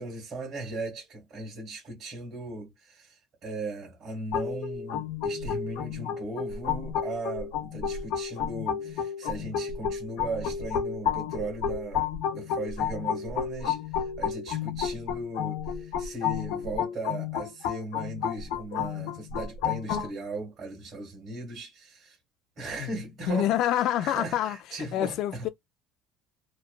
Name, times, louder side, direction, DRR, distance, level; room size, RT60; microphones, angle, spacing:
voice 1, 0.0-22.2 22.6-23.5 24.0-25.5, right 2 dB, 40° right, 1.7 m, -38 dB
sound 1, 4.3-20.1, left 7 dB, 75° left, 0.8 m, -31 dB
voice 2, 23.3-25.5, left 12 dB, 55° left, 0.3 m, -27 dB
3.0 x 2.1 x 2.3 m
cardioid pair, 140°, 0 cm